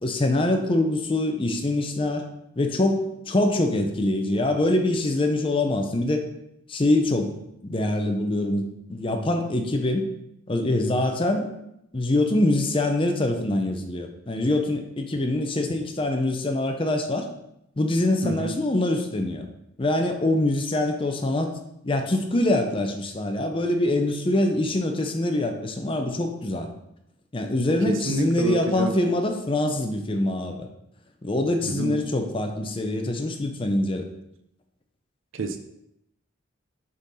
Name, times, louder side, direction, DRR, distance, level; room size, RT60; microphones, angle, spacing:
voice 1, 0.0-2.3 2.6-6.2 6.7-7.4 7.6-10.1 10.5-11.5 11.9-17.3 17.8-19.5 19.8-21.5 21.8-26.7 27.3-30.7 31.2-34.1, left 1 dB, 25° left, 5 dB, 0.6 m, -24 dB
voice 2, 18.2-18.6 27.8-28.9 31.6-32.0 35.3-35.6, right 3 dB, 70° right, 7 dB, 0.6 m, -28 dB
6.4 x 3.8 x 4.2 m, 0.82 s
head